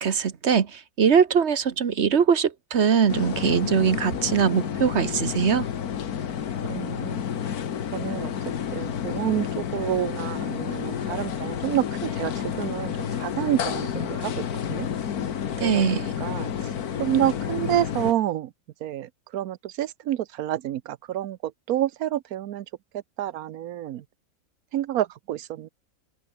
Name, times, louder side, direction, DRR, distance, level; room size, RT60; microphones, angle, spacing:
voice 1, 0.0-5.7 15.6-16.1, right 7 dB, 50° right, 1.4 m, -22 dB
sound 1, 3.1-18.1, left 8 dB, 90° left, 1.8 m, -30 dB
voice 2, 6.7-7.2 7.9-8.3 8.7-14.9 15.6-16.5 17.0-18.5 18.8-22.7 22.9-24.0 24.7-25.7, right 12 dB, 80° right, 1.2 m, -28 dB
omnidirectional pair, 1.5 m